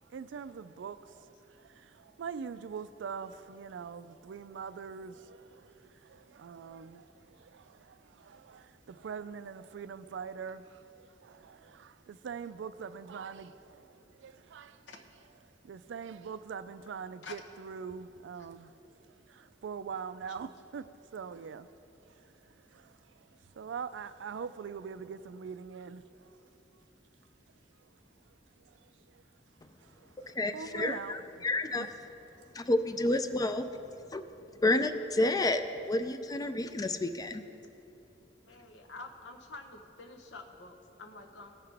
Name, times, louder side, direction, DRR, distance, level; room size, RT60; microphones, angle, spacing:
voice 1, 0.0-14.8 15.6-18.7 19.1-21.7 22.0-26.4 28.7-29.2 29.8-31.5 31.7-31.9, right 6 dB, 75° right, 13 dB, 0.4 m, -43 dB
voice 2, 30.4-31.9 32.5-33.7 34.1-34.2 34.6-37.4, left 2 dB, 20° left, 9 dB, 0.4 m, -30 dB
voice 3, 38.4-41.5, left 3 dB, 75° left, 3 dB, 1.0 m, -47 dB
16.5 x 5.7 x 3.4 m, 2.8 s
head